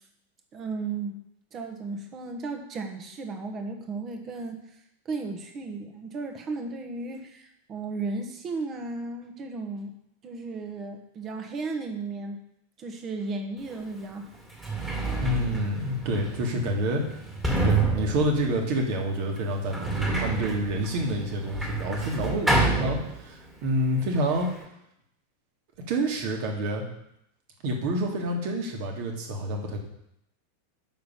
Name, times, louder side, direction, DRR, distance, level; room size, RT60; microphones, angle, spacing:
voice 1, 0.5-1.2 1.5-4.6 5.0-9.9 10.2-12.4 12.8-14.3, right 3 dB, 30° right, 5 dB, 1.3 m, -35 dB
Sliding door, 13.7-13.8 14.4-23.6 23.8-24.7, right 3 dB, 10° right, 2.2 m, -29 dB
voice 2, 15.2-17.0 17.6-24.5 25.9-26.8 27.6-29.8, right 1 dB, 45° right, 2 dB, 1.9 m, -28 dB
6.5 x 5.7 x 7.0 m, 0.79 s
figure-of-eight pair, 90°, 0 cm